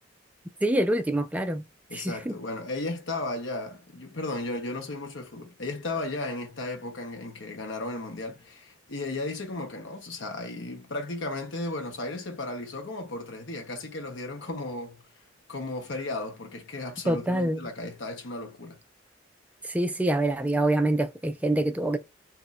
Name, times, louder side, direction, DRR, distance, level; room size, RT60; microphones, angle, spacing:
voice 1, 0.6-2.3 17.1-17.7 19.6-22.0, right 1 dB, 5° right, 0.3 m, -26 dB
voice 2, 1.9-15.0 15.5-18.8, left 2 dB, 65° left, 1.0 m, -35 dB
2.7 x 2.5 x 4.0 m
head